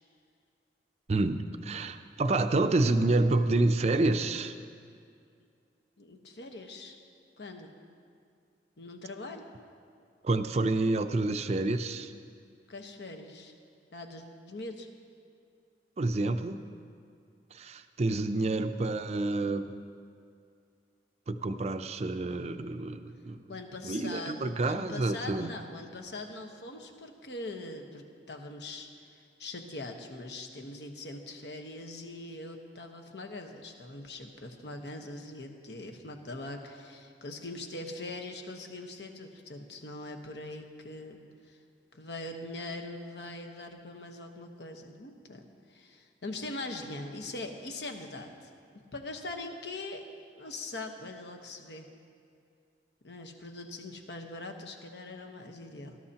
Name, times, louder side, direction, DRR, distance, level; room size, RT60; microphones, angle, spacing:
voice 1, 1.1-4.6 10.2-12.1 16.0-16.6 17.5-19.7 21.3-23.4 23.8-25.5, right 2 dB, 35° right, 9 dB, 0.5 m, -28 dB
voice 2, 6.0-7.0 7.4-7.7 8.8-9.4 12.7-13.5 13.9-14.9 23.5-41.2 41.5-41.6 41.9-50.0 50.3-51.9 53.0-56.0, left 2 dB, 70° left, 4 dB, 1.1 m, -42 dB
19.0 x 12.5 x 2.9 m, 2.3 s
head